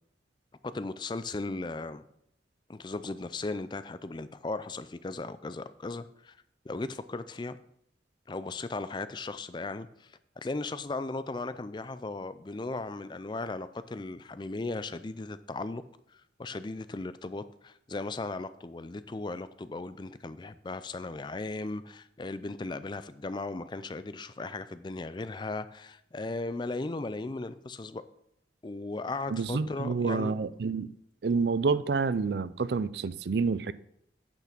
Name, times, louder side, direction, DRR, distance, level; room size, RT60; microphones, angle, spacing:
voice 1, 0.6-2.0 2.7-6.3 6.6-7.6 8.3-10.1 10.4-15.8 16.4-28.0 28.6-30.3, left 3 dB, 25° left, 13 dB, 0.4 m, -37 dB
voice 2, 29.3-30.9 31.2-33.7, right 4 dB, 65° right, 16 dB, 0.4 m, -28 dB
9.1 x 6.0 x 5.9 m, 0.75 s
head